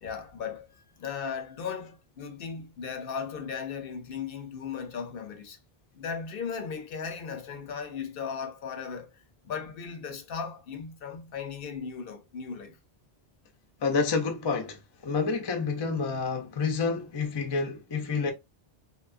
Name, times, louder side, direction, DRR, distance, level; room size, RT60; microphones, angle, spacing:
voice 1, 0.0-5.6 5.9-12.8, left 6 dB, 65° left, 0.7 m, -37 dB
voice 2, 13.8-18.3, left 4 dB, 40° left, 0.4 m, -29 dB
2.9 x 2.3 x 2.3 m
omnidirectional pair, 1.1 m